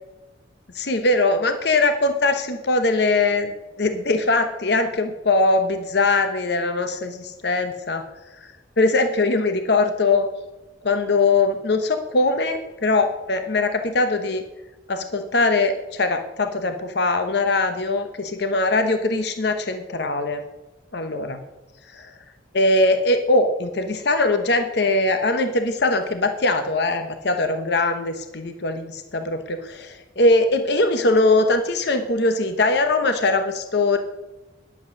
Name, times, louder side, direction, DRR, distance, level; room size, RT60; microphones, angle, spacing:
voice 1, 0.7-3.5 3.8-8.0 8.8-10.3 10.8-14.4 14.9-20.4 20.9-21.4 21.9-22.1 22.5-34.0, left 2 dB, 60° left, 7 dB, 0.9 m, -21 dB
11.5 x 7.9 x 6.4 m, 1.1 s
head